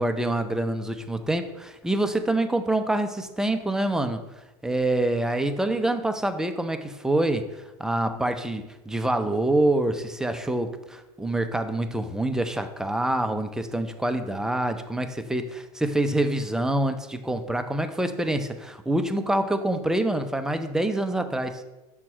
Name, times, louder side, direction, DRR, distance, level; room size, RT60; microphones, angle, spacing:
voice 1, 0.0-4.2 4.6-7.5 7.8-21.6, right 1 dB, 5° right, 7 dB, 0.5 m, -26 dB
6.0 x 3.6 x 4.4 m, 1.0 s
hypercardioid pair, 95°, 18 cm